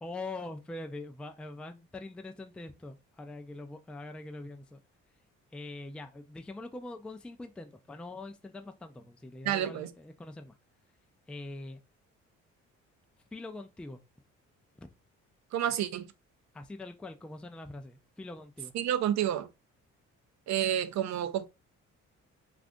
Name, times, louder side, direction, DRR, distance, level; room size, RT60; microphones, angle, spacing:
voice 1, 0.0-4.8 5.5-10.5 11.3-11.8 13.3-14.0 14.8-14.9 16.5-18.7, left 2 dB, 5° left, 0.3 m, -43 dB
voice 2, 9.4-9.9 15.5-16.1 18.7-19.5 20.5-21.5, right 10 dB, 65° right, 0.5 m, -29 dB
2.5 x 2.5 x 3.5 m
cardioid pair, 90°, 30 cm